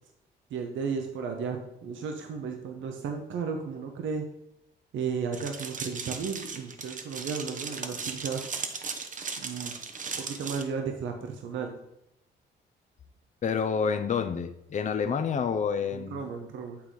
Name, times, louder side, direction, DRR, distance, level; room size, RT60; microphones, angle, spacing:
voice 1, 0.5-4.2 4.9-8.4 9.4-9.8 10.2-11.8 15.9-16.8, right 6 dB, 75° right, 4 dB, 0.9 m, -34 dB
sound 1, 5.3-10.6, right 5 dB, 40° right, 0.9 m, -37 dB
voice 2, 13.4-16.2, left 6 dB, 40° left, 9 dB, 0.6 m, -28 dB
8.7 x 3.9 x 4.8 m, 0.83 s
cardioid pair, 90°, 20 cm